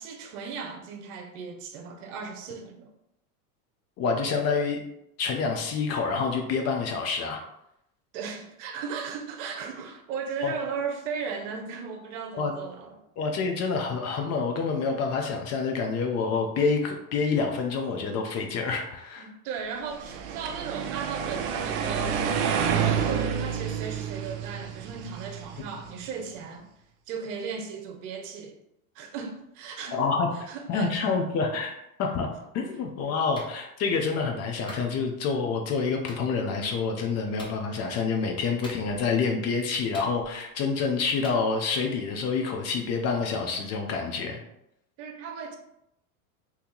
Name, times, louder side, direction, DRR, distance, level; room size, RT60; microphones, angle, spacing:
voice 1, 0.0-2.9 8.1-13.0 19.2-22.2 22.7-26.7 27.1-28.6 28.9-30.0 30.3-31.1 45.0-45.6, right 6 dB, 60° right, 0.8 m, -36 dB
voice 2, 4.0-4.8 5.2-7.4 10.4-10.5 12.4-12.5 13.2-19.3 29.9-32.3 32.5-44.4, left 4 dB, 35° left, 0.7 m, -27 dB
sound 1, 19.9-26.0, right 7 dB, 40° right, 0.4 m, -29 dB
Clapping, 33.3-33.5 34.7-34.9 36.1-36.2 37.4-37.6 38.6-39.1 39.9-40.5 41.2-41.4, left 1 dB, 10° left, 0.8 m, -43 dB
2.8 x 2.8 x 3.8 m
hypercardioid pair, 110°, 43 cm